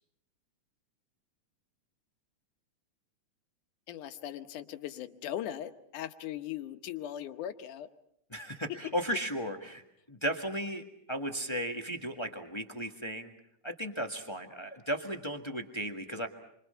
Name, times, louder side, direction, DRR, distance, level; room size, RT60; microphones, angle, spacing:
voice 1, 3.9-7.9, left 11 dB, 90° left, 9 dB, 2.6 m, -39 dB
voice 2, 8.3-13.3 13.6-16.3, equal, 15° left, 5 dB, 1.0 m, -35 dB
29.5 x 24.5 x 5.7 m, 0.76 s
omnidirectional pair, 3.5 m